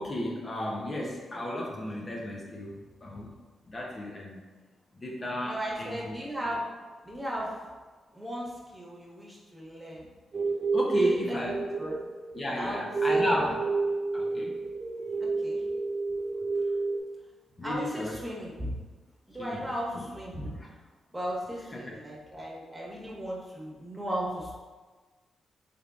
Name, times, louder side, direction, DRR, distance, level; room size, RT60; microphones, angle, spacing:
voice 1, 0.0-3.3 3.6-4.4 5.0-6.2 10.7-11.6 12.3-13.6 14.1-14.6 17.6-18.2 19.4-19.6 19.9-20.1 20.6-20.7 21.7-22.0, left 1 dB, 40° left, -3 dB, 0.6 m, -33 dB
voice 2, 5.4-6.7 7.0-7.5 8.1-10.1 10.8-12.0 12.6-13.4 15.2-15.6 17.6-18.8 19.3-20.5 21.1-24.5, equal, 15° right, -4 dB, 1.2 m, -36 dB
sound 1, 10.3-17.0, right 3 dB, 45° right, 0.4 m, -29 dB
3.6 x 3.4 x 2.4 m, 1.3 s
supercardioid pair, 55°, 0 cm